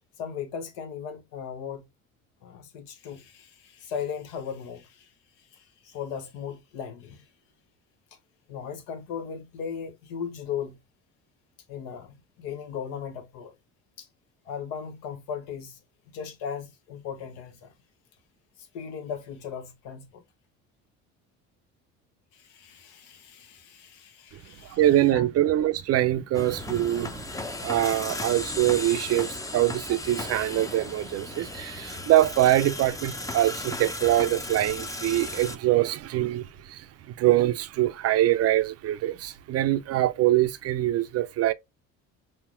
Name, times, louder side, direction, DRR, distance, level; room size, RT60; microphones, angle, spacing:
voice 1, 0.2-1.9 2.4-5.1 5.5-7.2 8.5-10.8 11.7-13.5 14.0-14.1 14.5-15.8 16.1-17.7 18.7-20.2 22.3-24.8 25.1-25.2, left 7 dB, 70° left, 1.0 m, -37 dB
voice 2, 24.7-27.3 27.6-41.5, right 14 dB, 40° right, 0.5 m, -24 dB
sound 1, 26.3-35.6, left 2 dB, 10° left, 0.5 m, -36 dB
5.6 x 2.1 x 2.4 m
hypercardioid pair, 60°, 40 cm